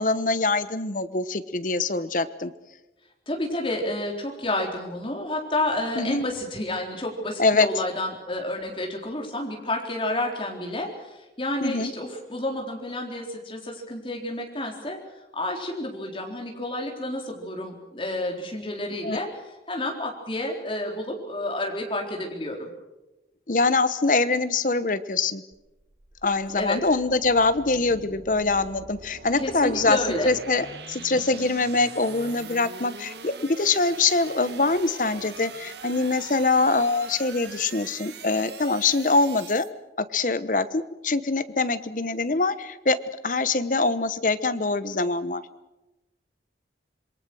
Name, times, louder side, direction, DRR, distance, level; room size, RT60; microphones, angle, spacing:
voice 1, 0.0-2.5 6.0-6.3 7.4-7.7 11.6-11.9 19.0-19.2 23.5-25.4 26.2-30.0 30.2-39.6 40.1-43.0 43.2-45.4, left 3 dB, 45° left, 13 dB, 1.0 m, -24 dB
voice 2, 3.3-15.0 15.3-19.3 19.7-22.7 26.6-26.8 29.4-30.3 42.3-42.4, left 1 dB, 30° left, 1 dB, 4.0 m, -30 dB
sound 1, 25.5-39.7, right 5 dB, 70° right, 1.5 m, -43 dB
27.0 x 22.5 x 6.3 m, 1.0 s
head